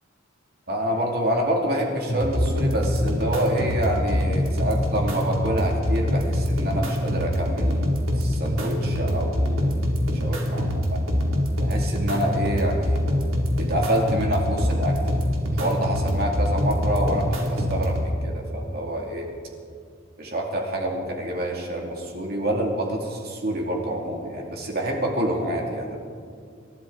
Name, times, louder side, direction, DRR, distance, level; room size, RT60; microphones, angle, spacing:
voice 1, 0.7-9.8 10.2-11.0 11.6-13.0 13.6-15.0 15.5-19.3 20.2-26.0, right 1 dB, 50° right, 0 dB, 2.5 m, -27 dB
sound 1, 2.1-18.1, equal, 90° right, 2.7 m, -24 dB
28.0 x 13.0 x 3.9 m, 2.3 s
head